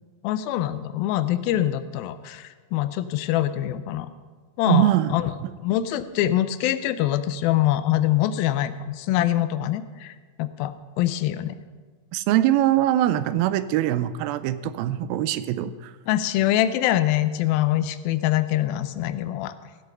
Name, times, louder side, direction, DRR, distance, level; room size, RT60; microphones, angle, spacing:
voice 1, 0.2-4.1 4.6-5.3 5.6-11.6 16.1-19.5, left 13 dB, 85° left, 13 dB, 2.4 m, -24 dB
voice 2, 4.7-5.5 12.1-15.9, right 13 dB, 90° right, 14 dB, 2.4 m, -22 dB
16.0 x 7.9 x 5.5 m, 1.4 s
omnidirectional pair, 4.2 m